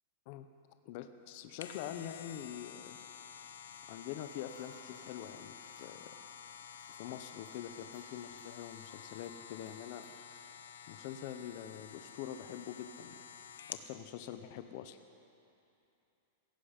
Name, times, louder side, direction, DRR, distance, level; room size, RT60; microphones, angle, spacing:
voice 1, 0.9-3.0 3.9-6.1 6.9-10.1 10.9-13.2 13.7-15.0, left 10 dB, 40° left, 8 dB, 0.7 m, -45 dB
sound 1, 1.3-13.9 14.3-14.4, left 8 dB, 90° left, 0.9 m, -51 dB
sound 2, 4.0-10.3, right 3 dB, 20° right, 2.7 m, -65 dB
16.5 x 16.0 x 5.1 m, 2.8 s
supercardioid pair, 170°, 0 cm